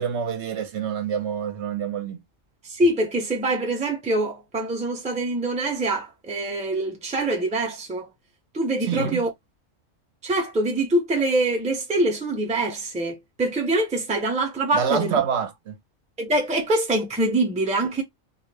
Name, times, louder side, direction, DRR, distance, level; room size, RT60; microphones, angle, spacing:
voice 1, 0.0-2.2 8.8-9.2 14.7-15.8, right 7 dB, 70° right, 0.8 m, -26 dB
voice 2, 2.6-8.1 8.5-9.3 10.2-15.1 16.2-18.0, right 2 dB, 10° right, 0.5 m, -24 dB
2.3 x 2.0 x 3.2 m
omnidirectional pair, 1.3 m